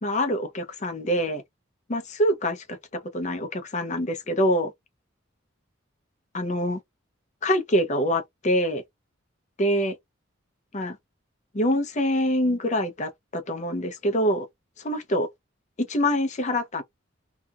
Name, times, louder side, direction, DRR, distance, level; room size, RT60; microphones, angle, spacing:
voice 1, 0.0-1.4 1.9-4.7 6.3-6.8 7.4-8.8 9.6-9.9 10.7-11.0 11.5-14.5 14.8-15.3 15.8-16.8, equal, 35° left, 0.6 m, -25 dB
2.8 x 2.4 x 2.3 m
head